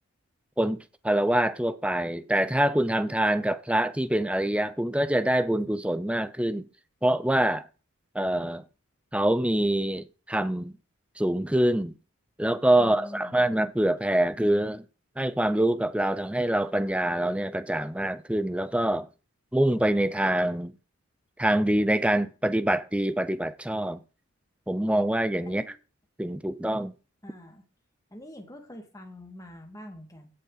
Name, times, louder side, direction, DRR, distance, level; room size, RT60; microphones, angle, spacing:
voice 1, 1.0-6.6 7.0-7.7 8.1-8.6 9.1-10.7 11.2-11.9 12.4-14.8 15.2-19.1 19.5-20.7 21.4-24.0 24.7-25.6 26.2-26.9, right 1 dB, 5° right, 0.6 m, -25 dB
voice 2, 12.8-13.5 25.4-25.7 27.2-27.6 28.1-30.3, left 1 dB, 15° left, 2.2 m, -45 dB
16.0 x 6.6 x 4.1 m
head